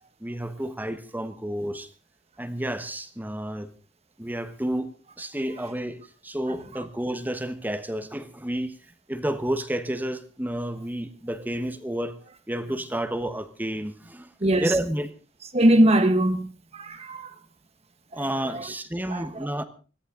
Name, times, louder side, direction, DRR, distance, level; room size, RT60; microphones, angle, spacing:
voice 1, 0.2-1.9 2.4-3.7 4.2-8.8 9.1-12.2 12.5-14.3 14.6-15.1 18.1-19.6, right 1 dB, 10° right, 1.2 m, -30 dB
voice 2, 14.4-14.7 15.5-16.5 16.7-17.3 18.1-18.7 19.1-19.5, right 1 dB, 35° right, 1.5 m, -22 dB
22.0 x 14.5 x 3.8 m
head